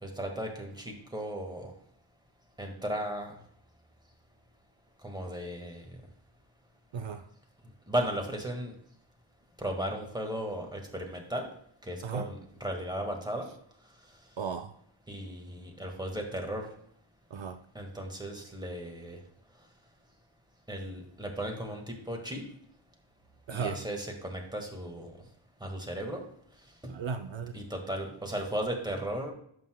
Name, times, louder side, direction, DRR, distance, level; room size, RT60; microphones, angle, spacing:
voice 1, 0.0-1.7 2.6-3.3 5.0-6.0 7.9-8.7 9.6-11.5 11.8-13.5 15.1-16.7 17.8-19.2 20.7-22.4 23.5-25.1 25.6-26.2 26.8-27.0 27.5-29.3, right 1 dB, 10° right, 1.7 m, -35 dB
voice 2, 14.4-14.7 17.3-17.6 23.5-23.8 26.9-27.5, right 6 dB, 70° right, 0.6 m, -35 dB
11.0 x 7.8 x 2.3 m
wide cardioid pair, 95°, 48 cm